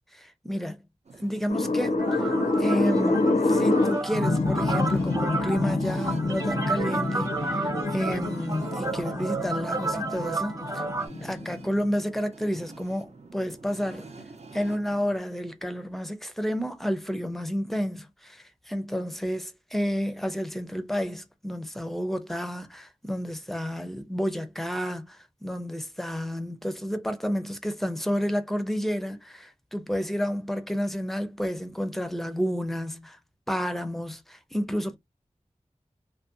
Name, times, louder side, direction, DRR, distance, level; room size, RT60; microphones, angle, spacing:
voice 1, 0.1-0.8 1.2-2.3 2.6-10.8 11.2-14.1 14.5-33.2 33.5-35.0, equal, ahead, 0.5 m, -30 dB
sound 1, 1.0-15.2, right 3 dB, 60° right, 0.5 m, -47 dB
sound 2, 1.5-11.8, left 2 dB, 70° left, 0.5 m, -27 dB
sound 3, 2.0-11.1, right 2 dB, 30° right, 0.8 m, -32 dB
2.5 x 2.1 x 2.5 m
wide cardioid pair, 50°, 13 cm